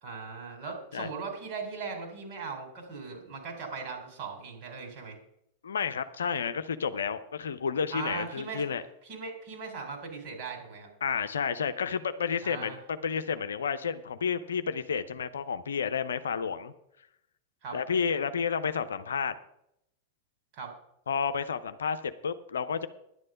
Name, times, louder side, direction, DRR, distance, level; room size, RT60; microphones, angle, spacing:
voice 1, 0.0-5.2 7.9-8.6 9.0-10.9 12.4-12.8 17.6-17.8 20.5-20.8, right 4 dB, 45° right, 3 dB, 4.0 m, -39 dB
voice 2, 5.6-8.8 11.0-16.7 17.7-19.3 21.1-22.9, left 6 dB, 65° left, 10 dB, 0.7 m, -31 dB
11.0 x 9.7 x 5.2 m, 0.79 s
figure-of-eight pair, 90°, 0 cm